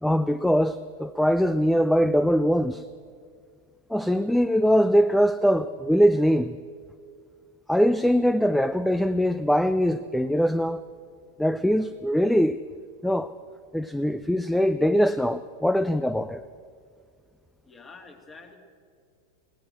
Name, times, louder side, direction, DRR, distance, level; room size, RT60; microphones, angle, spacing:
voice 1, 0.0-2.9 3.9-6.6 7.7-10.8 11.4-12.6 13.0-13.3 13.7-16.4, equal, ahead, 0.4 m, -22 dB
voice 2, 17.6-18.6, left 4 dB, 20° left, 2.4 m, -47 dB
20.0 x 17.5 x 7.4 m
figure-of-eight pair, 90°, 0 cm